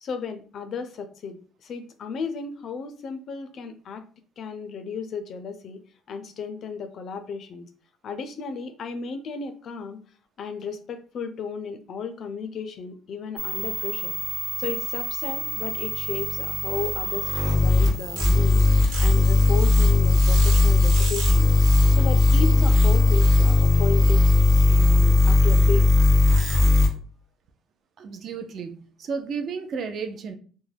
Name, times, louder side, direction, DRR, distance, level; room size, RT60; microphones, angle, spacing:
voice 1, 0.0-4.0 4.4-5.8 6.1-7.7 8.0-10.0 10.4-14.2 14.6-21.5 22.0-24.4 24.7-25.9, left 5 dB, 45° left, 9 dB, 0.4 m, -34 dB
sound 1, 13.4-26.9, left 3 dB, 85° right, 1.1 m, -19 dB
voice 2, 28.0-30.3, right 5 dB, 45° right, 7 dB, 0.4 m, -33 dB
2.3 x 2.1 x 3.2 m, 0.42 s
cardioid pair, 130°, 0 cm